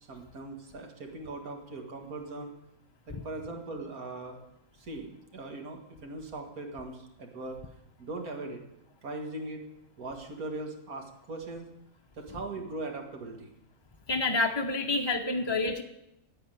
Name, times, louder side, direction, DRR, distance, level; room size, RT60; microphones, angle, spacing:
voice 1, 0.0-2.5 3.1-4.4 4.7-7.6 8.0-8.6 9.0-9.7 10.0-11.7 12.1-13.5, right 2 dB, 85° right, 3 dB, 2.3 m, -40 dB
voice 2, 14.1-15.8, left 2 dB, 25° left, 4 dB, 0.7 m, -28 dB
9.8 x 9.6 x 9.1 m, 0.87 s
omnidirectional pair, 1.5 m